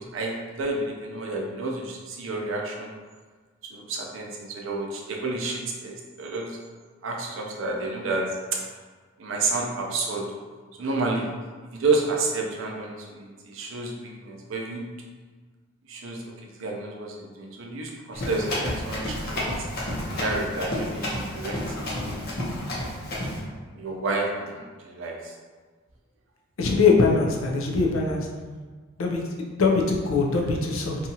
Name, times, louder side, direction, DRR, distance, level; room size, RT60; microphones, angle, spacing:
voice 1, 0.0-2.9 3.7-6.6 7.0-8.3 9.2-10.3 10.8-11.3 11.7-14.8 15.9-16.2 16.5-19.4 20.1-22.2 23.7-25.3, right 3 dB, 70° right, 0 dB, 0.5 m, -30 dB
Run, 18.1-23.4, left 1 dB, 50° left, 0.7 m, -30 dB
voice 2, 26.6-28.3 29.0-31.1, left 4 dB, 85° left, 0 dB, 0.5 m, -22 dB
2.7 x 2.4 x 2.7 m, 1.4 s
head